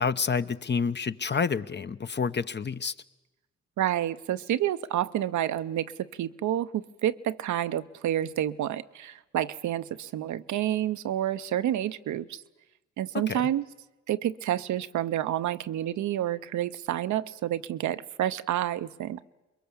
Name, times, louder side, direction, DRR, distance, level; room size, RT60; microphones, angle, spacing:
voice 1, 0.0-2.9 13.1-13.4, left 5 dB, 35° left, 12 dB, 0.8 m, -28 dB
voice 2, 3.8-12.4 13.0-13.7 14.1-19.2, right 12 dB, 75° right, 12 dB, 0.7 m, -29 dB
23.0 x 22.0 x 7.2 m, 1.1 s
supercardioid pair, 45°, 30 cm